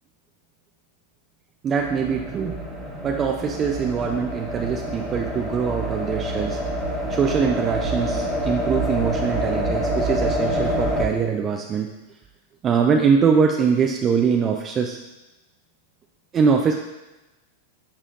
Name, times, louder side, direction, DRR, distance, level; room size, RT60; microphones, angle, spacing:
voice 1, 1.6-2.6 3.0-6.6 7.1-11.9 12.6-15.0 16.3-16.8, right 6 dB, 30° right, 2 dB, 0.5 m, -22 dB
sound 1, 1.8-11.1, right 1 dB, 5° right, 1.3 m, -27 dB
10.0 x 4.2 x 2.5 m, 1.0 s
hypercardioid pair, 105°, 0 cm